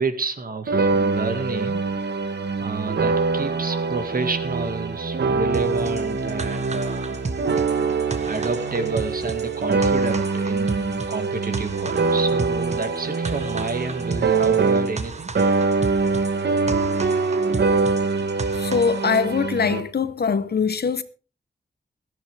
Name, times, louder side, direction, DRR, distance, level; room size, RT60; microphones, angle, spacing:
voice 1, 0.0-2.0 2.6-7.2 8.3-15.3, right 3 dB, 60° right, 1.9 m, -30 dB
sound 1, 0.7-15.1 15.4-19.8, right 4 dB, 85° right, 1.5 m, -24 dB
sound 2, 5.5-19.2, right 3 dB, 40° right, 1.2 m, -34 dB
voice 2, 18.6-21.0, left 5 dB, 70° left, 1.1 m, -22 dB
17.5 x 13.0 x 3.5 m
wide cardioid pair, 110°, 17 cm